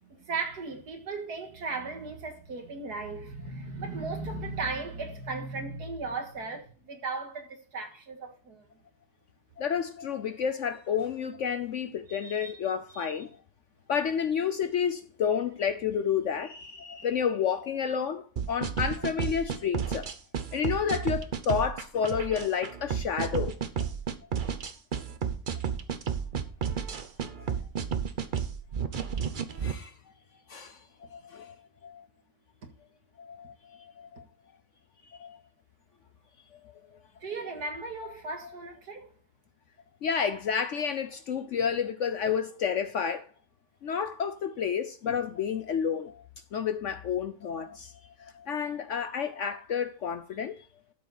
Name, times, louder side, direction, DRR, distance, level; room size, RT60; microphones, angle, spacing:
voice 1, 0.0-8.6 12.1-12.6 12.9-13.1 37.2-39.1, right 3 dB, 70° right, 2.3 m, -36 dB
voice 2, 9.6-13.3 13.9-20.1 20.5-23.6 29.6-29.9 30.5-30.8 31.1-31.5 31.8-32.1 33.2-34.2 35.1-35.4 40.0-43.3 43.8-46.2 46.5-47.9 48.2-50.6, left 7 dB, 60° left, 0.8 m, -30 dB
sound 1, 18.4-29.7, right 7 dB, 45° right, 0.7 m, -32 dB
12.5 x 7.3 x 4.1 m
omnidirectional pair, 1.7 m